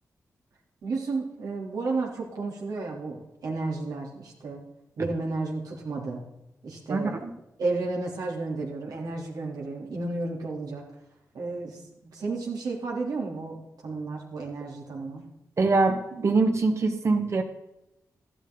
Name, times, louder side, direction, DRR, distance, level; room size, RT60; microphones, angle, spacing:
voice 1, 0.8-4.6 5.0-6.3 6.6-7.2 7.6-10.8 11.3-15.2, right 3 dB, 80° right, -2 dB, 3.3 m, -32 dB
voice 2, 6.9-7.3 15.6-17.4, right 3 dB, 50° right, 5 dB, 1.7 m, -23 dB
14.0 x 12.0 x 3.9 m, 0.90 s
wide cardioid pair, 110°, 6 cm